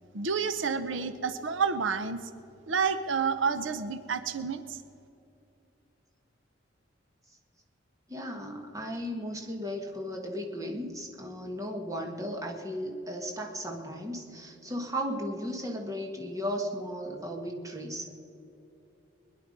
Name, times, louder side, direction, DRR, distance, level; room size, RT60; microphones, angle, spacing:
voice 1, 0.1-2.2 2.7-4.8, right 5 dB, 90° right, 12 dB, 0.8 m, -29 dB
voice 2, 8.1-18.1, equal, 20° right, 2 dB, 1.6 m, -35 dB
21.0 x 11.0 x 5.3 m, 2.9 s
head